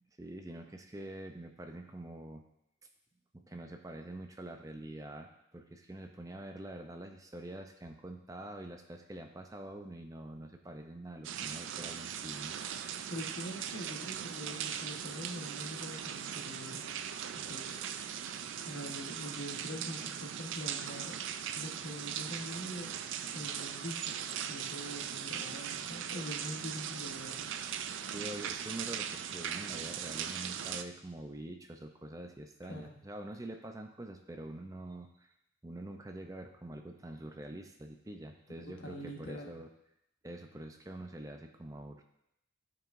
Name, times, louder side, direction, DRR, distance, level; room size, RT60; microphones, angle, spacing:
voice 1, 0.2-2.5 3.3-12.6 28.1-35.3 35.6-39.7 40.2-42.0, right 1 dB, 15° right, 5 dB, 0.5 m, -45 dB
sound 1, 11.2-30.8, right 8 dB, 80° right, 0.4 m, -39 dB
voice 2, 13.1-16.8 17.3-18.1 18.6-21.1 21.5-22.9 23.3-24.2 24.5-27.5 32.7-32.9 38.8-39.5, left 1 dB, 80° left, 1 dB, 1.2 m, -44 dB
13.0 x 4.8 x 2.6 m, 0.80 s
head